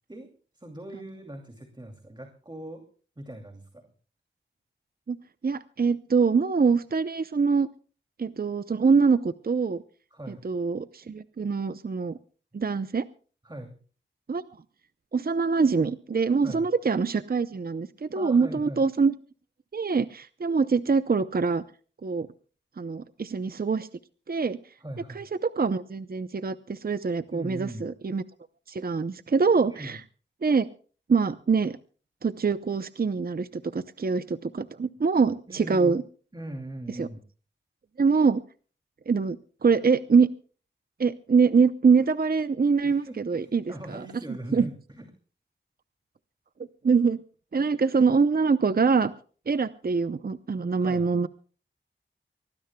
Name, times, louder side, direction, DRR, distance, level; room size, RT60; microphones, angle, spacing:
voice 1, 0.1-2.8 3.2-3.9 10.1-10.5 13.4-13.8 16.4-16.7 18.1-18.8 24.8-25.2 27.3-27.9 29.7-30.0 35.5-35.9 36.3-37.2 42.8-45.1 50.8-51.1, right 1 dB, 20° right, 4 dB, 2.6 m, -40 dB
voice 2, 5.4-7.7 8.2-9.8 10.4-12.2 12.5-13.0 14.3-14.4 15.1-19.1 19.7-21.6 22.0-22.3 22.8-23.9 24.3-24.6 25.2-28.2 28.7-30.0 30.4-30.7 31.1-31.8 32.2-36.0 37.0-37.1 38.0-38.4 39.1-39.4 39.6-40.3 41.0-44.0 44.5-44.7 46.8-47.2 47.5-49.1 49.5-51.3, right 5 dB, 45° right, 13 dB, 0.6 m, -24 dB
24.5 x 19.5 x 2.2 m, 0.40 s
wide cardioid pair, 65°, 20 cm